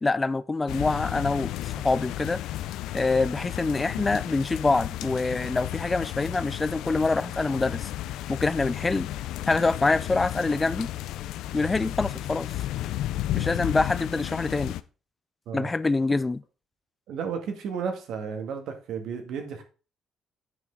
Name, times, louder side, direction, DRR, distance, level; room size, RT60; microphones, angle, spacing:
voice 1, 0.0-2.4 2.9-7.9 8.3-9.1 9.5-10.9 11.5-12.5 13.3-14.7 15.5-16.4, left 3 dB, 20° left, 0.4 m, -25 dB
sound 1, 0.7-14.8, left 13 dB, 90° left, 0.5 m, -33 dB
voice 2, 17.1-19.6, right 6 dB, 75° right, 2.0 m, -33 dB
9.3 x 5.8 x 3.9 m
cardioid pair, 115°, 0 cm